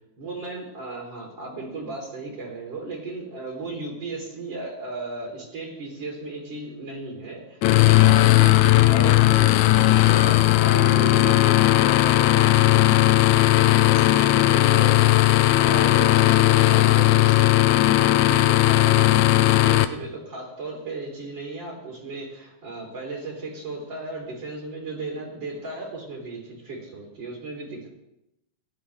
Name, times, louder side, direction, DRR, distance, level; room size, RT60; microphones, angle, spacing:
voice 1, 0.2-27.9, right 3 dB, 35° right, -3 dB, 4.1 m, -35 dB
sound 1, 7.6-19.9, left 16 dB, 80° left, 1.9 m, -17 dB
16.5 x 11.5 x 3.5 m, 0.88 s
omnidirectional pair, 3.5 m